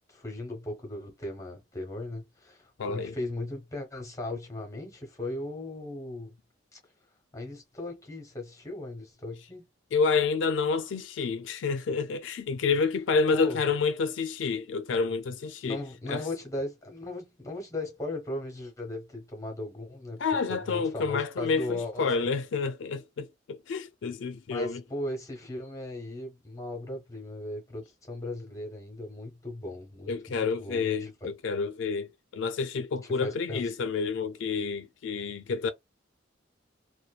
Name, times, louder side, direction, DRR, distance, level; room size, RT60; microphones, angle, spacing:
voice 1, 0.1-6.3 6.7-6.8 7.3-9.7 13.3-13.6 15.6-20.2 20.5-22.3 24.5-31.1 33.0-33.7, left 2 dB, 15° left, 0.9 m, -37 dB
voice 2, 2.8-3.1 9.9-15.8 16.1-16.3 20.2-24.8 30.1-35.7, left 5 dB, 70° left, 0.3 m, -29 dB
2.8 x 2.2 x 2.3 m
head